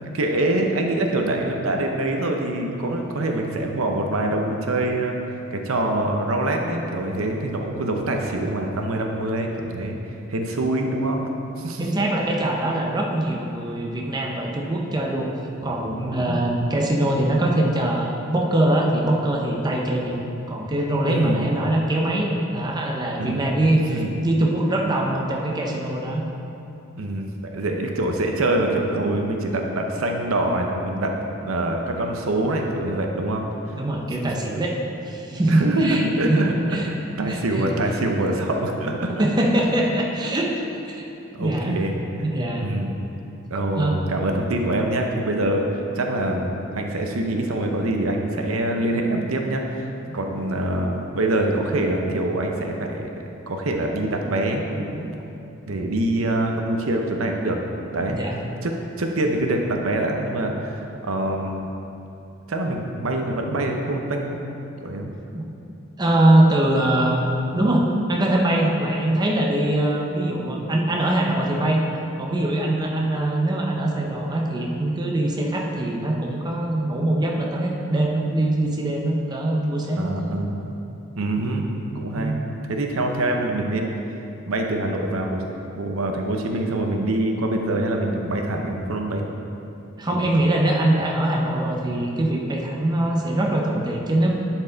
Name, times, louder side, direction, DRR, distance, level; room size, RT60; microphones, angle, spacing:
voice 1, 0.1-5.2 5.5-10.0 10.3-11.3 11.6-11.9 16.2-16.4 21.1-21.5 23.2-23.5 23.7-24.1 27.0-31.1 31.4-33.4 34.2-34.3 35.5-39.2 41.3-42.2 42.6-43.0 43.5-53.1 53.5-55.1 55.7-57.6 57.9-58.2 58.6-61.7 62.5-64.4 64.8-65.1 80.0-80.8 81.1-82.4 82.7-83.9 84.5-85.4 85.8-89.3 90.1-90.3, right 1 dB, 90° right, 2 dB, 0.7 m, -25 dB
voice 2, 11.8-15.3 15.6-20.2 20.5-26.2 33.7-34.8 35.0-36.9 37.3-37.7 39.2-40.6 40.9-41.0 41.4-41.7 42.2-42.6 43.8-43.9 58.1-58.4 65.3-65.4 66.0-67.2 67.5-71.8 72.2-80.4 82.2-82.4 90.0-94.3, right 1 dB, 20° right, -1 dB, 0.7 m, -22 dB
10.5 x 4.6 x 3.9 m, 2.8 s
head